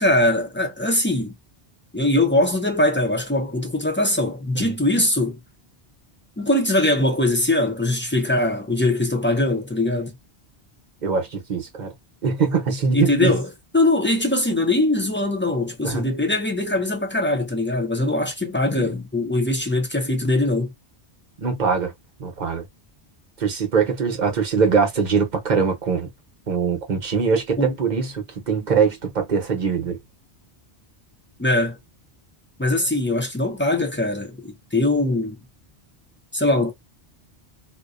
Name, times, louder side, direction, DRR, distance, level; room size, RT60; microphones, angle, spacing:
voice 1, 0.0-1.3 1.9-5.4 6.4-10.1 12.9-20.7 27.6-27.7 31.4-31.8 32.6-35.4 36.3-36.7, left 1 dB, 20° left, 0.3 m, -21 dB
voice 2, 11.0-11.9 12.2-13.4 15.8-16.1 21.4-21.9 22.2-22.6 23.4-26.1 26.5-30.0, right 5 dB, 45° right, 0.8 m, -22 dB
2.4 x 2.2 x 2.4 m
omnidirectional pair, 1.1 m